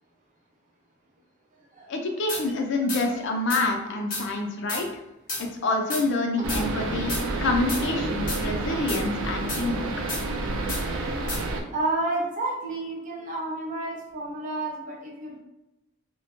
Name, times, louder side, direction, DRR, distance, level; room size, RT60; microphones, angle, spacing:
voice 1, 1.9-4.9 5.4-7.1 7.4-9.9, left 2 dB, 60° left, 3 dB, 0.5 m, -27 dB
sound 1, 2.3-2.4 2.9-3.0 3.5-3.6 4.1-4.2 4.7-4.8 5.3-5.4 5.9-6.0 6.5-6.6 7.1-7.2 7.7-7.8 8.3-8.4 8.9-9.0 9.5-9.6 10.1-10.2 10.7-10.8 11.3-11.4, left 2 dB, 40° left, 0.8 m, -31 dB
voice 2, 2.9-3.3 10.9-11.0 11.7-15.4, right 2 dB, 40° right, -3 dB, 0.6 m, -31 dB
sound 2, 6.4-11.6, right 2 dB, 85° right, 0.4 m, -29 dB
2.2 x 2.1 x 2.9 m, 0.95 s
head